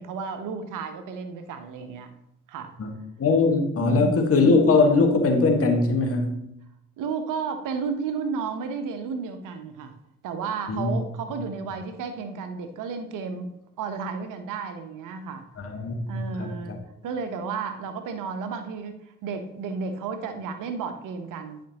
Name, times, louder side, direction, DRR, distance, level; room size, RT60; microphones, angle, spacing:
voice 1, 0.0-2.1 2.5-2.8 3.8-4.2 7.0-9.9 10.2-15.5 16.1-16.8 17.0-21.6, right 5 dB, 55° right, 8 dB, 0.9 m, -32 dB
voice 2, 3.2-6.4 10.7-10.9 15.6-16.8, left 3 dB, 40° left, 4 dB, 1.5 m, -21 dB
10.5 x 5.2 x 2.9 m, 0.80 s
hypercardioid pair, 50°, 37 cm